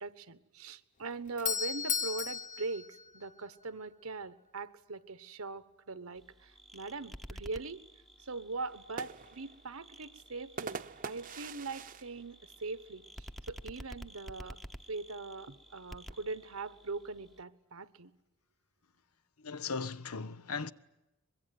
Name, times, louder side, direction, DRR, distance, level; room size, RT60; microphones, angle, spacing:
voice 1, 0.0-7.8 8.3-14.6 14.9-18.1, right 3 dB, 75° right, 1.3 m, -41 dB
Doorbell, 1.0-3.9, left 7 dB, 35° left, 1.0 m, -36 dB
sound 1, 6.1-17.4, equal, ahead, 0.9 m, -51 dB
sound 2, 8.7-13.3 13.7-13.8 14.1-14.6 15.4-17.0, right 5 dB, 40° right, 0.9 m, -46 dB
voice 2, 19.4-20.7, left 4 dB, 85° left, 1.0 m, -37 dB
24.0 x 22.5 x 9.5 m
head